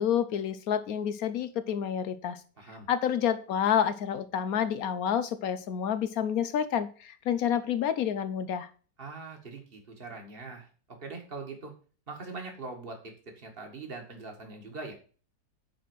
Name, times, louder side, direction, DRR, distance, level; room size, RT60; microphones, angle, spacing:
voice 1, 0.0-2.4 2.9-8.7, left 9 dB, 65° left, 12 dB, 1.2 m, -29 dB
voice 2, 2.6-2.9 9.0-10.7 11.0-11.7 12.1-14.9, right 3 dB, 35° right, 3 dB, 2.0 m, -42 dB
9.2 x 4.3 x 6.2 m, 0.39 s
omnidirectional pair, 1.8 m